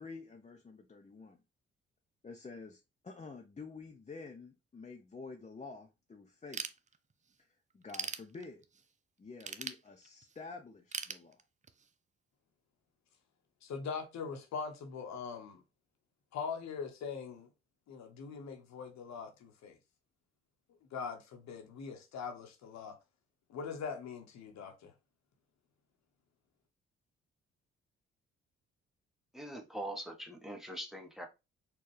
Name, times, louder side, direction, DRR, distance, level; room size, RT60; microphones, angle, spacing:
voice 1, 0.0-1.4 2.2-6.6 7.7-8.6 9.2-11.4, left 4 dB, 25° left, 0.7 m, -49 dB
Ratchet pawl / Tools, 6.5-7.3 7.7-8.8 9.4-10.4 10.9-11.9, right 5 dB, 25° right, 0.5 m, -41 dB
voice 2, 13.6-15.6 16.3-17.5 17.9-19.8 20.9-22.9 23.5-24.9, left 5 dB, 70° left, 1.0 m, -42 dB
voice 3, 29.3-31.3, right 1 dB, ahead, 1.1 m, -42 dB
4.3 x 2.4 x 3.2 m
hypercardioid pair, 50°, 29 cm